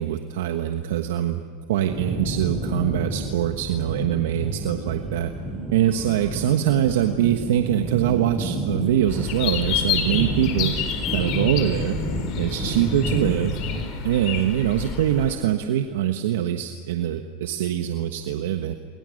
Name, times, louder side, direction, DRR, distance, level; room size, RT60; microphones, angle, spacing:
voice 1, 0.0-1.4 1.7-5.3 5.7-10.7 11.1-12.0 12.4-13.6 14.0-18.7, right 11 dB, 80° right, 7 dB, 1.3 m, -23 dB
sound 1, 1.9-13.8, right 2 dB, 10° right, 7.5 m, -30 dB
sound 2, 9.1-15.3, left 8 dB, 50° left, 4.6 m, -29 dB
29.5 x 23.5 x 6.6 m, 2.1 s
supercardioid pair, 125°, 0 cm